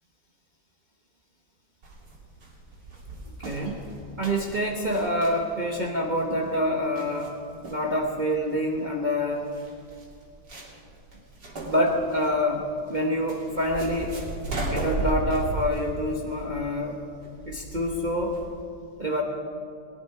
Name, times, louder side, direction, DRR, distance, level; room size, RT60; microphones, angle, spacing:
sound 1, 1.8-18.6, right 2 dB, 75° right, 3.1 m, -36 dB
voice 1, 3.4-3.8 4.2-7.3 7.7-9.4 11.7-12.6 12.9-14.2 14.7-17.0 17.5-18.4 19.0-19.2, equal, 30° right, 0 dB, 1.1 m, -26 dB
20.5 x 11.0 x 4.9 m, 2.4 s
omnidirectional pair, 1.8 m